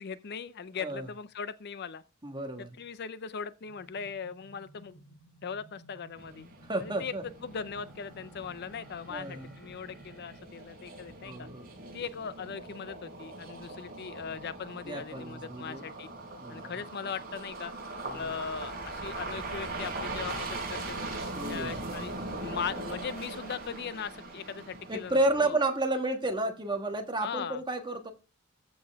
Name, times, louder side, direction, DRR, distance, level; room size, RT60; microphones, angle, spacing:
voice 1, 0.0-2.0 2.6-5.0 5.4-6.5 6.8-7.1 7.4-11.5 11.9-16.1 16.5-17.7 18.1-21.1 21.5-22.1 22.4-25.6 27.2-27.6, left 6 dB, 50° left, 0.5 m, -39 dB
voice 2, 2.2-2.8 6.6-7.2 9.1-9.6 11.2-11.7 14.8-15.8 16.4-16.7 18.0-18.4 21.3-21.8 24.9-28.1, right 2 dB, 20° right, 1.4 m, -31 dB
sound 1, 3.6-10.4, equal, ahead, 3.2 m, -56 dB
sound 2, 6.2-25.5, right 2 dB, 45° right, 5.0 m, -41 dB
14.0 x 5.3 x 3.5 m
head